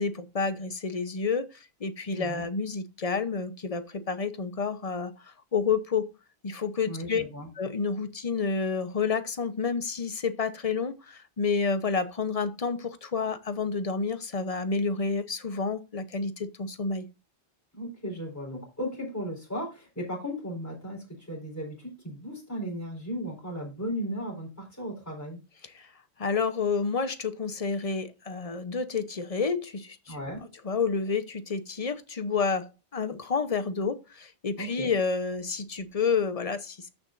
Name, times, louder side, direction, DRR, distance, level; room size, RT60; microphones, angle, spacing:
voice 1, 0.0-6.1 6.4-7.2 7.6-17.1 25.6-25.9 26.2-30.2 30.6-32.7 32.9-36.9, left 5 dB, 35° left, 0.9 m, -29 dB
voice 2, 2.1-2.4 6.9-7.5 17.7-25.4 30.1-30.4 34.6-34.9, equal, 15° left, 4.1 m, -36 dB
14.0 x 6.1 x 2.5 m
omnidirectional pair, 1.1 m